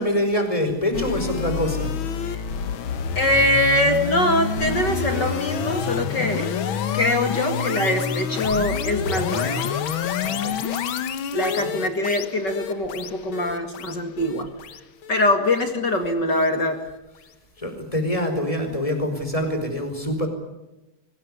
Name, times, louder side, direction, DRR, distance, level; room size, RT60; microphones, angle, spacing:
voice 1, 0.0-1.9 10.2-10.6 11.6-11.7 17.6-20.3, left 1 dB, 10° left, 6 dB, 4.9 m, -25 dB
sound 1, 0.9-16.1, left 6 dB, 70° left, 1.1 m, -28 dB
voice 2, 3.2-6.5 6.9-9.7 11.3-14.5 15.1-16.8, left 1 dB, 35° left, 6 dB, 2.2 m, -23 dB
24.0 x 20.0 x 9.8 m, 0.97 s
omnidirectional pair, 4.1 m